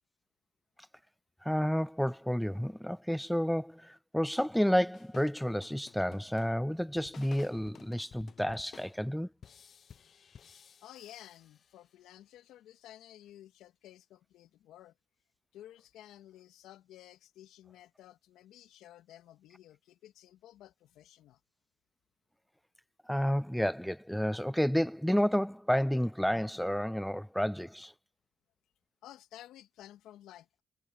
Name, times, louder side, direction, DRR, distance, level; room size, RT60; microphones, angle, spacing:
voice 1, 1.4-9.3 23.1-27.9, equal, 5° left, 0.3 m, -30 dB
sound 1, 4.6-12.0, left 7 dB, 60° left, 1.0 m, -56 dB
voice 2, 10.8-14.9 15.5-21.4 29.0-30.6, left 13 dB, 80° left, 2.0 m, -53 dB
hypercardioid pair, 45°, 0 cm